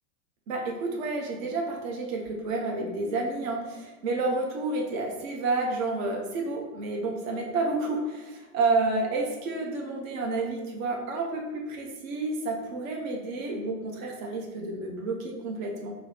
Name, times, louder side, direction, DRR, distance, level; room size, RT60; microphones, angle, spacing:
voice 1, 0.5-15.9, right 3 dB, 65° right, -1 dB, 0.9 m, -30 dB
5.9 x 2.0 x 2.7 m, 1.2 s
supercardioid pair, 125°, 42 cm